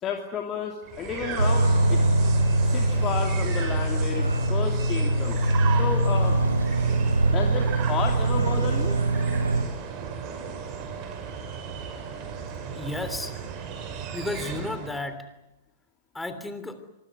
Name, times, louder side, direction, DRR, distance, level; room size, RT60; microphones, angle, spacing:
voice 1, 0.0-2.0 2.6-5.4 5.8-6.4 7.2-9.0, left 7 dB, 25° left, 2 dB, 2.9 m, -32 dB
sound 1, 0.8-15.1, right 6 dB, 35° right, 5.8 m, -36 dB
sound 2, 1.4-9.6, right 2 dB, 85° right, 3.0 m, -23 dB
voice 2, 12.8-13.3 14.1-15.2 16.1-16.8, left 2 dB, 5° left, 10 dB, 3.2 m, -32 dB
26.5 x 21.5 x 9.6 m, 0.94 s
figure-of-eight pair, 110°, 0 cm